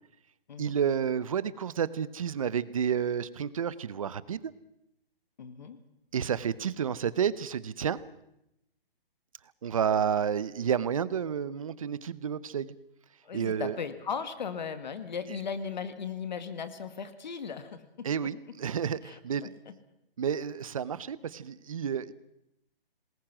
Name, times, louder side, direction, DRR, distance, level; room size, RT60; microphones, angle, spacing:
voice 1, 0.6-4.5 6.1-8.0 9.6-12.7 13.3-13.8 18.0-19.5 20.2-22.1, right 8 dB, 35° right, 18 dB, 0.8 m, -30 dB
voice 2, 5.4-5.8 13.2-18.1 19.0-19.7, left 6 dB, 50° left, 10 dB, 2.0 m, -37 dB
27.0 x 20.0 x 6.1 m, 0.83 s
hypercardioid pair, 170°, 30 cm